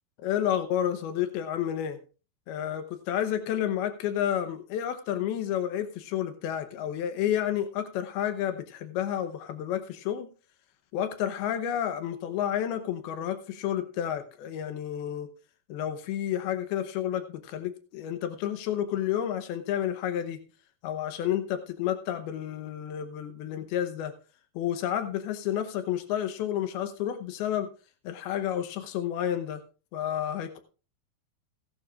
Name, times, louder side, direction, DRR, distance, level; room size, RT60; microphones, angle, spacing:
voice 1, 0.2-2.0 2.5-10.3 10.9-15.3 15.7-20.4 20.8-24.1 24.6-27.7 28.0-29.6 29.9-30.6, left 10 dB, 90° left, 8 dB, 2.9 m, -30 dB
16.5 x 12.0 x 2.5 m, 0.35 s
omnidirectional pair, 4.3 m